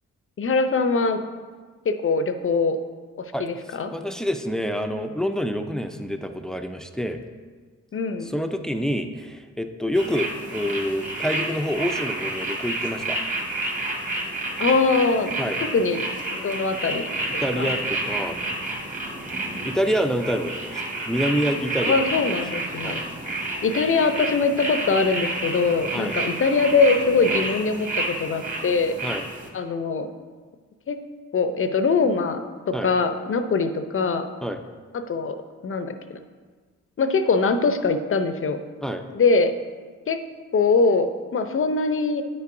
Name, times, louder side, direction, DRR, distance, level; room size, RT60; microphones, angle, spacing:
voice 1, 0.4-1.2 1.8-2.8 3.4-3.9 7.9-8.3 14.6-15.4 15.7-17.7 21.8-23.0 23.6-29.0 29.5-30.1 30.9-31.0 31.3-34.3 34.9-35.4 35.6-36.2 37.0-38.6 39.1-39.5 40.1-40.2 40.5-42.2, left 4 dB, 40° left, 9 dB, 0.7 m, -22 dB
voice 2, 3.3-7.2 8.2-13.2 15.4-15.6 17.4-18.4 19.6-22.4 22.8-23.0 25.9-26.2 27.3-27.5 29.0-29.3 32.7-32.9 34.4-34.6 38.8-39.0, equal, ahead, 6 dB, 0.6 m, -27 dB
sound 1, 9.9-29.5, right 2 dB, 25° right, 1.6 m, -30 dB
9.4 x 5.4 x 2.6 m, 1.5 s
supercardioid pair, 55°, 32 cm